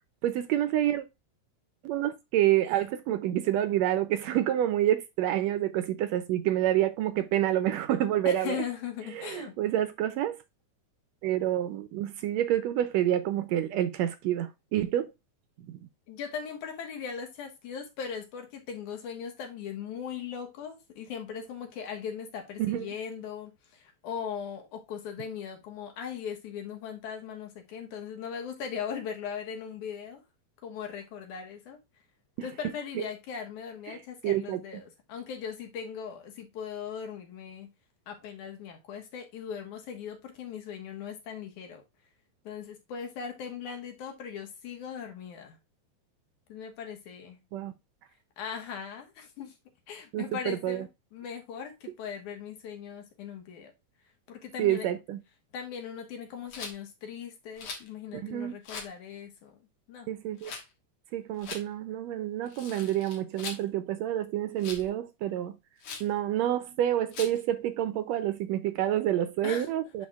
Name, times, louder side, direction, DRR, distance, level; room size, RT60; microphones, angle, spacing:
voice 1, 0.2-1.0 1.8-8.6 9.1-10.4 11.2-15.1 15.7-15.8 22.6-22.9 32.4-32.5 33.0-33.1 33.9-34.6 47.5-47.7 50.1-50.9 54.6-55.2 58.1-58.5 60.1-60.6 61.1-65.5 66.0-70.1, right 12 dB, 75° right, 1.7 m, -28 dB
voice 2, 8.3-9.6 16.1-30.2 30.6-31.8 32.4-37.7 38.1-41.8 42.4-45.6 46.5-47.4 48.4-49.5 49.9-53.7 54.3-54.9 55.5-59.6 59.9-60.1 69.4-69.7, left 7 dB, 80° left, 2.8 m, -39 dB
Rattle, 56.5-56.8 57.6-57.9 58.6-58.9 60.4-60.6 61.4-61.6 62.5-63.6 64.6-64.9 65.8-66.1 67.1-67.4, left 5 dB, 65° left, 2.5 m, -40 dB
10.5 x 4.0 x 2.4 m
omnidirectional pair, 3.4 m